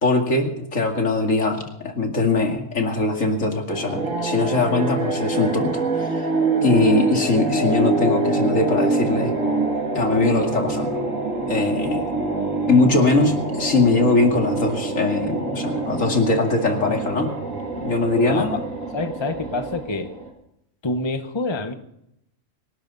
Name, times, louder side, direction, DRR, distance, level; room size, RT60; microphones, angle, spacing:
voice 1, 0.0-6.3 6.6-9.3 9.9-11.0 11.5-12.0 12.7-17.4 17.8-18.7, left 3 dB, 75° left, 3 dB, 2.6 m, -21 dB
sound 1, 3.7-20.3, right 3 dB, 75° right, 3.0 m, -25 dB
voice 2, 18.3-20.1 20.8-21.7, left 3 dB, 20° left, 7 dB, 1.1 m, -27 dB
25.5 x 12.0 x 4.0 m, 0.78 s
omnidirectional pair, 1.4 m